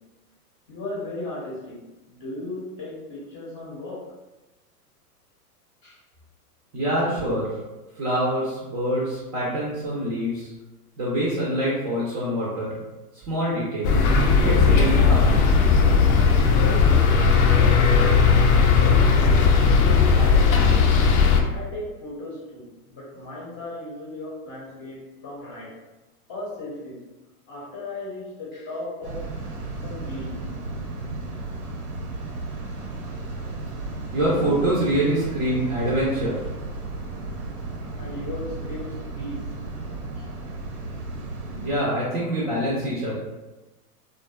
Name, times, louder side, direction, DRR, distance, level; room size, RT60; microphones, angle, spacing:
voice 1, 0.7-4.1 5.8-6.0 20.0-20.9 21.5-25.8 26.3-27.0 27.5-29.3 29.8-30.4 33.4-33.5 38.0-39.5 40.1-40.4, left 2 dB, 25° left, -7 dB, 0.7 m, -36 dB
voice 2, 6.7-7.5 8.0-10.5 11.0-12.8 13.1-14.1 14.4-15.5 34.1-36.4 41.5-43.1, right 1 dB, 25° right, -7 dB, 0.5 m, -25 dB
sound 1, 13.8-21.4, left 5 dB, 65° left, 0.5 m, -17 dB
sound 2, 29.0-41.7, right 3 dB, 85° right, 0.7 m, -34 dB
2.5 x 2.2 x 2.2 m, 1.1 s
hypercardioid pair, 120°, 47 cm